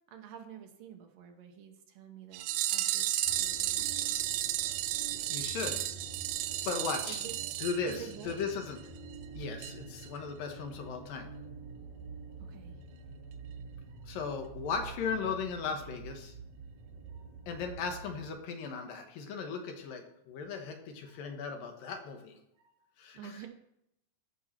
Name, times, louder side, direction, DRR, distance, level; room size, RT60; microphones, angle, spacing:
voice 1, 0.1-4.1 7.1-7.4 7.9-8.4 12.4-12.8 13.9-14.1 17.1-17.3 21.1-21.2 22.6-22.9 23.1-23.5, right 9 dB, 70° right, 5 dB, 2.3 m, -49 dB
sound 1, 2.3-8.5 8.8-8.9 9.1-9.2 9.6-9.7 10.0-10.1, right 13 dB, 90° right, 2.5 m, -33 dB
sound 2, 3.2-18.3, right 4 dB, 15° right, 3.8 m, -48 dB
voice 2, 5.3-5.8 6.7-7.2 7.6-8.8 9.3-11.3 14.0-16.3 17.5-22.3 23.0-23.4, left 5 dB, 75° left, 4 dB, 2.8 m, -37 dB
14.0 x 5.4 x 4.4 m, 0.78 s
omnidirectional pair, 4.2 m